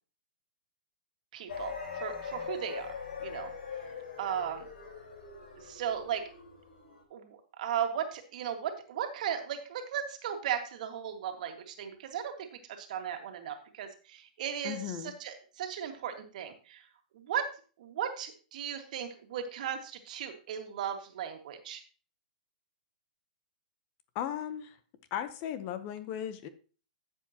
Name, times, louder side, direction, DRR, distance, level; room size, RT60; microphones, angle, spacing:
voice 1, 1.3-3.5 4.2-4.7 5.6-6.2 7.1-16.9 17.1-17.5 17.8-21.8, right 9 dB, 55° right, 5 dB, 1.9 m, -36 dB
sound 1, 1.5-7.0, left 6 dB, 75° left, 4.2 m, -42 dB
voice 2, 14.6-15.1 24.1-24.8 25.1-26.5, left 10 dB, 35° left, 12 dB, 0.8 m, -36 dB
13.0 x 7.5 x 2.9 m, 0.38 s
hypercardioid pair, 150°, 5 cm